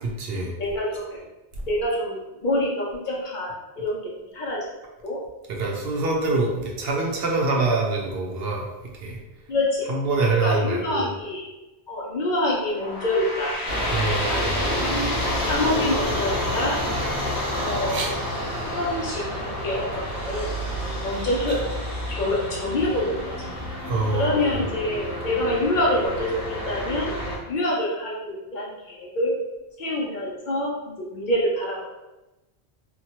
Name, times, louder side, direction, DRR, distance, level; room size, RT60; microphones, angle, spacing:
voice 1, 0.0-0.5 5.5-8.7 8.9-9.2 9.9-11.1 13.9-14.6 17.9-18.1 23.8-24.6, right 3 dB, 70° right, 0 dB, 0.8 m, -25 dB
voice 2, 0.6-1.3 1.6-5.2 9.5-9.9 10.3-11.5 11.9-13.6 14.3-15.1 15.4-16.8 17.6-18.1 18.7-19.2 19.6-20.5 21.0-21.6 22.1-23.3 24.1-27.1 27.5-29.4 29.8-31.9, left 1 dB, 55° left, -3 dB, 0.6 m, -26 dB
sound 1, 12.6-17.8, left 1 dB, 75° left, 1.0 m, -34 dB
sound 2, 13.7-27.4, equal, 5° right, 0.7 m, -29 dB
2.9 x 2.2 x 2.8 m, 1.0 s
omnidirectional pair, 1.1 m